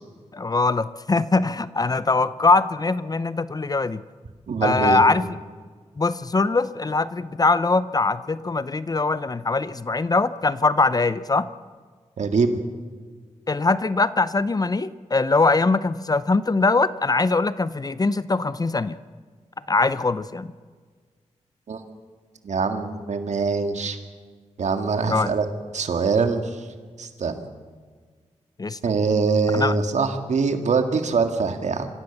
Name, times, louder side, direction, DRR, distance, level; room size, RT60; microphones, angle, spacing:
voice 1, 0.3-4.0 4.6-5.4 6.0-11.5 13.5-19.0 19.7-20.5 25.1-25.3 28.6-28.8 29.5-29.7, left 3 dB, 30° left, 15 dB, 0.6 m, -22 dB
voice 2, 4.5-5.0 12.2-12.5 21.7-21.8 22.4-24.0 24.6-25.5 25.7-26.4 27.0-27.4 28.8-31.9, right 4 dB, 75° right, 7 dB, 1.9 m, -23 dB
25.0 x 16.0 x 7.2 m, 1.5 s
wide cardioid pair, 105°, 12 cm